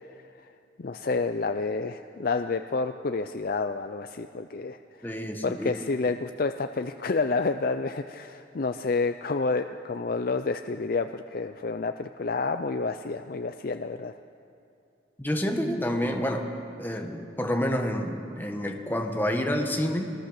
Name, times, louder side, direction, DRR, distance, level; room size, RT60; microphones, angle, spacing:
voice 1, 0.8-4.8 5.0-14.1, left 3 dB, 50° left, 8 dB, 0.5 m, -29 dB
voice 2, 5.0-5.7 15.2-16.5 16.8-20.1, equal, 10° left, 3 dB, 1.5 m, -28 dB
23.5 x 19.5 x 6.7 m, 2.6 s
head